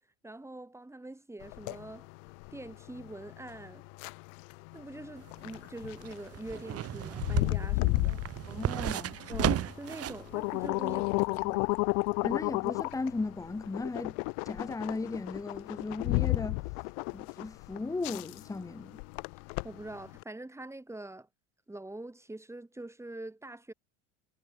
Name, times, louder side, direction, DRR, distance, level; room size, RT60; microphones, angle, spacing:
voice 1, 0.2-2.1 2.5-3.8 4.7-8.2 9.3-11.7 19.6-21.3 21.7-23.7, right 2 dB, 5° right, 6.7 m, -44 dB
sound 1, 1.4-20.2, left 40 dB or more, 65° left, 2.3 m, -33 dB
sound 2, 5.2-10.3 10.6-10.7, right 12 dB, 40° right, 1.8 m, -34 dB
voice 2, 8.5-9.2 12.2-14.2 14.4-16.8 17.1-19.0, left 3 dB, 10° left, 1.0 m, -36 dB
hypercardioid pair, 95°, 37 cm